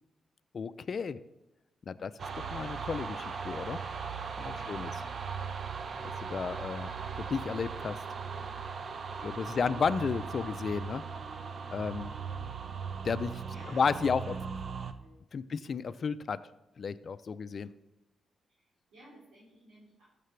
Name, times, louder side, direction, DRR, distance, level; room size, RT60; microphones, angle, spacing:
voice 1, 0.5-1.2 1.9-2.1 2.4-3.8 4.4-4.9 6.0-6.9 7.2-8.0 9.4-11.0 11.7-12.1 13.0-13.4 13.7-14.3 15.3-16.4 16.8-17.7, left 5 dB, 50° left, 13 dB, 0.4 m, -32 dB
voice 2, 1.9-2.6 4.5-5.1 9.1-10.0 13.5-13.9 14.2-15.7 18.5-20.0, right 1 dB, 75° right, -9 dB, 3.6 m, -57 dB
sound 1, 2.2-14.9, right 5 dB, 50° right, 0.6 m, -38 dB
14.5 x 6.7 x 3.3 m, 0.94 s
cardioid pair, 75°, 0 cm